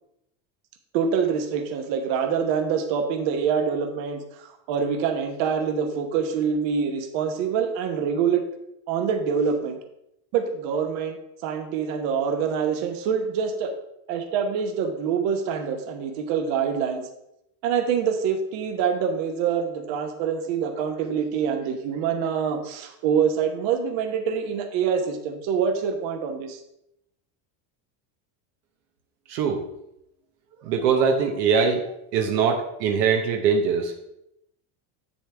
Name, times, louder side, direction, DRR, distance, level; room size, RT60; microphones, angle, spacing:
voice 1, 0.9-8.4 8.9-9.8 10.3-11.2 11.4-13.7 14.1-17.1 17.6-26.6, right 7 dB, 65° right, 6 dB, 1.2 m, -25 dB
voice 2, 29.3-29.6 30.6-31.8 32.1-34.1, right 6 dB, 85° right, 3 dB, 1.1 m, -22 dB
7.5 x 6.9 x 3.5 m, 0.81 s
supercardioid pair, 120°, 49 cm